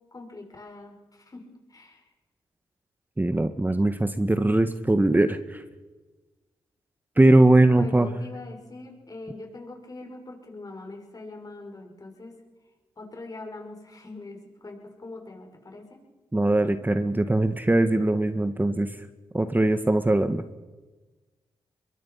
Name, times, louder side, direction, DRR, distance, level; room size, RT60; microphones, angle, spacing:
voice 1, 0.1-2.1 7.7-12.4 13.0-16.0, left 2 dB, 40° left, 3 dB, 6.8 m, -42 dB
voice 2, 3.2-5.6 7.2-8.1 16.3-18.9 19.3-20.4, right 2 dB, 20° right, 9 dB, 1.6 m, -21 dB
23.5 x 22.5 x 5.9 m, 1.3 s
supercardioid pair, 50°, 10 cm